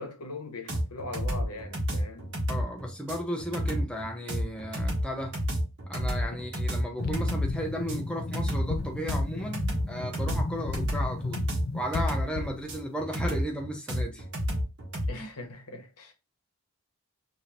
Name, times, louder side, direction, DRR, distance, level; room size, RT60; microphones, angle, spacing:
voice 1, 0.0-2.3 6.3-6.4 15.1-16.1, left 2 dB, 85° left, 1.1 m, -40 dB
sound 1, 0.7-15.1, equal, 50° right, 1.5 m, -31 dB
voice 2, 2.5-5.4 5.9-11.5 11.7-14.2 15.1-15.3, equal, 5° left, 0.6 m, -34 dB
sound 2, 7.0-12.7, left 3 dB, 45° left, 0.4 m, -34 dB
4.8 x 2.8 x 2.8 m
head